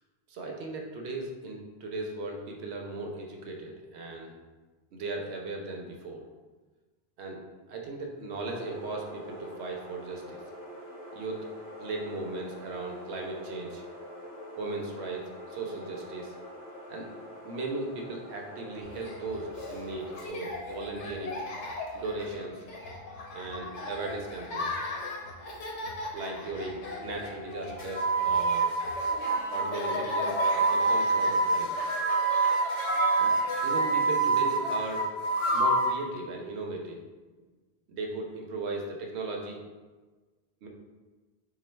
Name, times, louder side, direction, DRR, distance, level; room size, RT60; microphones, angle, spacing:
voice 1, 0.3-4.3 4.9-6.2 7.2-7.4 7.7-10.4 11.1-11.4 11.8-13.8 14.6-16.3 16.9-17.1 17.4-21.4 21.9-22.6 23.3-24.8 26.1-28.7 29.5-31.7 33.2-33.3 33.6-35.1 35.5-37.0 37.9-39.6 40.6-40.7, right 2 dB, 70° right, 1 dB, 0.8 m, -37 dB
sound 1, 8.5-20.3, equal, 65° left, 0.9 m, -45 dB
Laughter, 18.8-35.6, left 2 dB, 80° left, 1.0 m, -39 dB
sound 2, 27.8-36.0, right 3 dB, 45° left, 0.4 m, -26 dB
3.1 x 2.2 x 4.3 m, 1.3 s
omnidirectional pair, 1.2 m